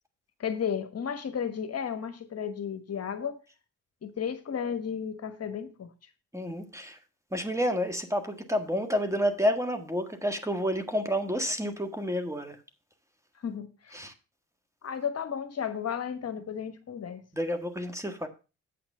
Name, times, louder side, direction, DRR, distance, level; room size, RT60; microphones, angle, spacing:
voice 1, 0.4-3.4 4.0-5.9 13.4-14.0 14.8-17.2, left 7 dB, 50° left, 1.2 m, -33 dB
voice 2, 6.3-7.0 7.3-12.5 13.9-14.1 17.3-18.3, equal, 10° right, 1.6 m, -29 dB
8.5 x 6.0 x 5.5 m
cardioid pair, 70°, 32 cm